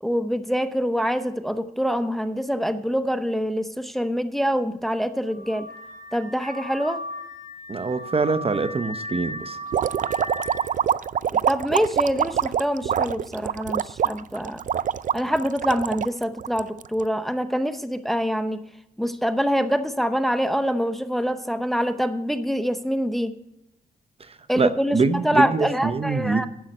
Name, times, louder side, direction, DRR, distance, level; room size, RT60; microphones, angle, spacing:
voice 1, 0.0-5.7 6.1-7.0 11.5-14.6 15.1-18.6 19.0-23.3 24.5-25.0 25.2-26.5, equal, ahead, 10 dB, 0.8 m, -25 dB
Car / Alarm, 5.3-10.7, equal, 75° right, 3.3 m, -36 dB
voice 2, 7.7-9.6 24.2-26.5, right 4 dB, 40° right, 11 dB, 0.8 m, -24 dB
sound 1, 9.7-17.0, right 9 dB, 55° right, 0.4 m, -25 dB
11.0 x 7.3 x 6.5 m, 0.84 s
cardioid pair, 75°, 15 cm